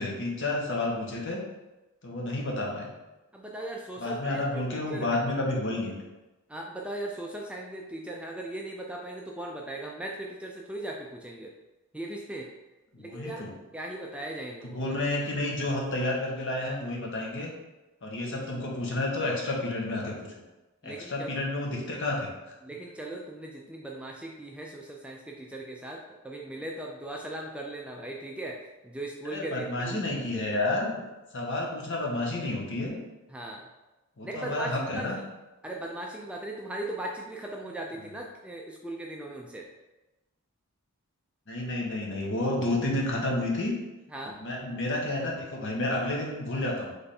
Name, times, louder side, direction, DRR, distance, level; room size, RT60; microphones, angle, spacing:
voice 1, 0.0-1.4 2.0-2.9 4.0-5.9 12.9-13.5 14.7-17.5 18.0-20.1 20.8-22.3 29.3-31.0 31.3-33.0 34.2-35.2 41.5-43.7 44.4-46.9, left 2 dB, 55° left, -1 dB, 1.0 m, -30 dB
voice 2, 3.3-5.3 6.5-11.5 11.9-12.5 13.0-15.0 20.8-21.5 22.6-30.0 30.4-30.6 33.3-33.7 34.2-35.2 35.6-39.7 44.1-44.4, right 1 dB, 5° right, -1 dB, 0.3 m, -38 dB
3.4 x 3.3 x 4.2 m, 1.1 s
head